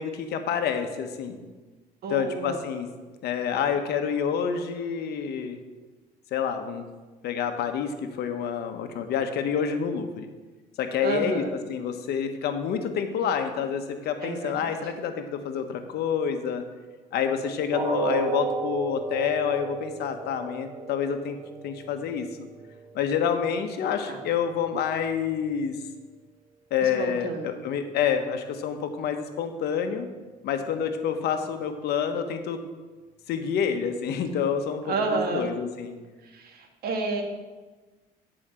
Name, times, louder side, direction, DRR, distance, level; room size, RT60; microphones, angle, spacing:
voice 1, 0.0-1.4 2.1-2.9 3.2-5.6 6.3-6.8 7.2-10.3 10.8-11.4 11.7-16.6 17.1-21.4 21.6-22.3 22.9-25.8 26.7-30.1 30.4-32.6 33.3-35.9, left 7 dB, 75° left, 7 dB, 1.1 m, -28 dB
voice 2, 2.0-2.6 11.0-11.5 14.2-14.8 24.1-24.2 26.8-27.7 34.8-35.5 36.2-37.2, right 3 dB, 65° right, 3 dB, 1.6 m, -30 dB
sound 1, 17.7-23.7 24.1-24.3 24.7-24.8, right 5 dB, 25° right, 0.7 m, -34 dB
8.7 x 5.0 x 7.4 m, 1.3 s
cardioid pair, 110°, 17 cm